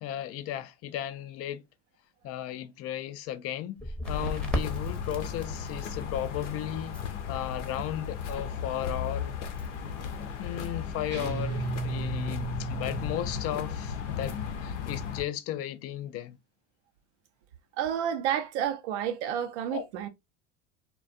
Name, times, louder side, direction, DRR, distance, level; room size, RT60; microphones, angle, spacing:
voice 1, 0.0-1.6 2.2-3.8 4.1-7.0 7.3-9.3 10.4-14.4 14.6-16.4 19.7-19.9, left 11 dB, 45° left, 0.4 m, -35 dB
Crackle, 3.8-10.5, left 1 dB, 5° left, 0.7 m, -40 dB
sound 1, 4.0-15.2, left 6 dB, 85° left, 0.6 m, -35 dB
sound 2, 11.1-13.7, right 4 dB, 30° right, 0.6 m, -35 dB
voice 2, 17.8-20.1, right 9 dB, 75° right, 0.5 m, -30 dB
2.4 x 2.2 x 2.4 m
hypercardioid pair, 80°, 35 cm